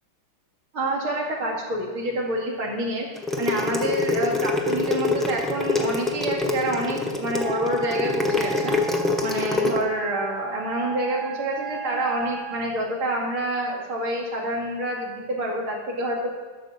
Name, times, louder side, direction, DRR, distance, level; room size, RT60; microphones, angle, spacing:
voice 1, 0.7-3.1 3.4-8.8 9.2-16.3, right 1 dB, 75° right, -1 dB, 3.0 m, -27 dB
sound 1, 3.2-9.8, left 3 dB, ahead, 0.4 m, -25 dB
Wind instrument woodwind instrument, 7.3-12.7, right 6 dB, 60° right, 1.4 m, -36 dB
12.0 x 6.1 x 7.0 m, 1.5 s
omnidirectional pair, 2.3 m